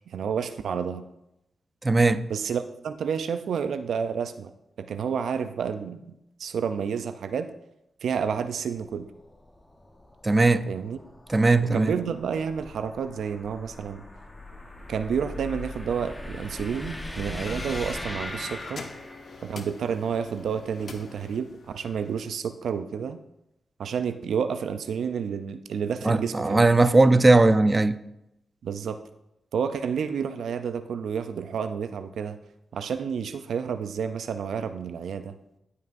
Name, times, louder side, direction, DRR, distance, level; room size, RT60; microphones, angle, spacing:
voice 1, 0.1-1.0 2.3-4.5 4.8-7.5 8.0-9.1 10.7-11.0 11.7-14.0 14.9-18.8 19.4-23.2 23.8-26.7 28.6-29.0 29.5-32.4 32.7-35.3, right 7 dB, 80° right, 0.4 m, -30 dB
voice 2, 1.8-2.2 10.2-10.7 11.3-11.9 26.0-28.0, right 2 dB, 30° right, 0.5 m, -19 dB
sound 1, 8.2-19.5, left 1 dB, 15° left, 1.0 m, -40 dB
sound 2, 17.3-22.2, left 4 dB, 65° left, 0.9 m, -43 dB
15.5 x 5.5 x 2.6 m
cardioid pair, 65°, 0 cm